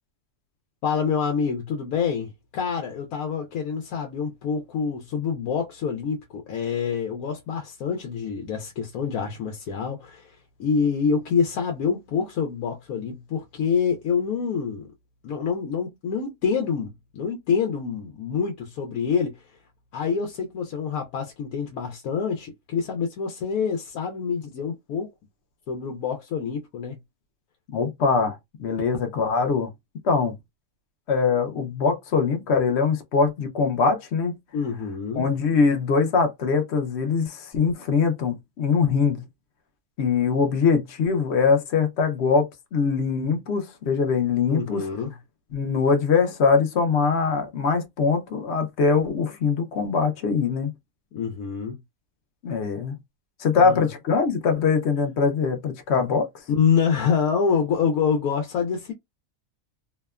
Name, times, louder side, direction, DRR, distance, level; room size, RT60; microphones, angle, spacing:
voice 1, 0.8-14.9 15.2-19.4 19.9-25.1 25.7-27.0 34.5-35.2 44.5-45.1 51.1-51.8 53.6-53.9 56.5-58.9, left 6 dB, 90° left, 1.1 m, -26 dB
voice 2, 27.7-29.7 30.0-30.4 31.1-34.3 35.2-39.2 40.0-44.8 45.5-50.7 52.4-53.0 53.4-56.3, left 5 dB, 60° left, 0.8 m, -22 dB
2.8 x 2.1 x 2.3 m
omnidirectional pair, 1.5 m